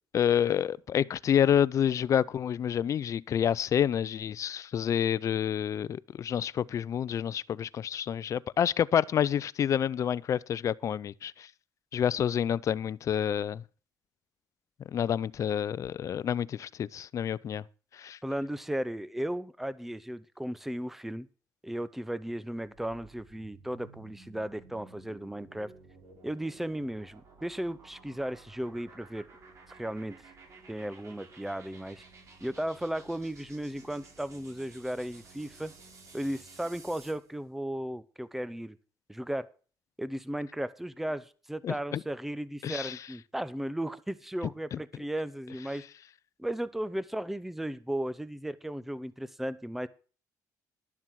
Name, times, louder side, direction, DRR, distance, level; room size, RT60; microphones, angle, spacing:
voice 1, 0.1-11.5 11.9-13.6 14.9-17.6 17.9-18.2 41.6-42.0 42.6-43.0 44.7-44.8, left 9 dB, 50° left, 0.5 m, -28 dB
voice 2, 18.2-21.3 21.6-25.7 26.2-29.3 29.8-30.2 30.7-32.0 32.4-35.7 36.1-38.8 39.1-39.5 40.0-45.8 46.4-49.9, right 1 dB, 5° right, 0.7 m, -35 dB
sound 1, 22.6-37.3, right 4 dB, 45° right, 5.8 m, -54 dB
12.0 x 7.3 x 6.3 m
cardioid pair, 105°, 7 cm